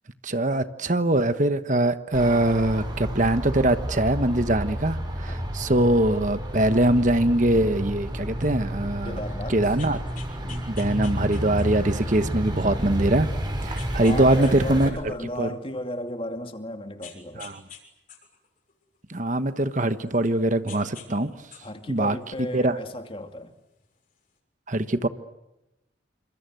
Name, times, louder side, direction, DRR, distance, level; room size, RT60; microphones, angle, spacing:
voice 1, 0.2-9.2 9.5-10.0 10.7-13.3 13.6-15.0 15.4-15.5 17.4-17.6 19.1-21.3 21.9-22.8 24.7-25.1, right 1 dB, 40° right, 1.2 m, -22 dB
sound 1, 2.1-14.9, equal, 25° right, 5.6 m, -31 dB
voice 2, 9.0-9.7 10.4-10.7 13.9-17.5 21.6-23.5, left 1 dB, 30° left, 2.4 m, -35 dB
sound 2, 9.8-11.9 12.5-12.6 13.8-14.5 14.8-16.1 17.0-17.8 18.1-20.3 20.7-21.1 21.4-22.8 23.8-23.9, left 8 dB, 45° left, 6.6 m, -46 dB
28.5 x 26.0 x 7.9 m
head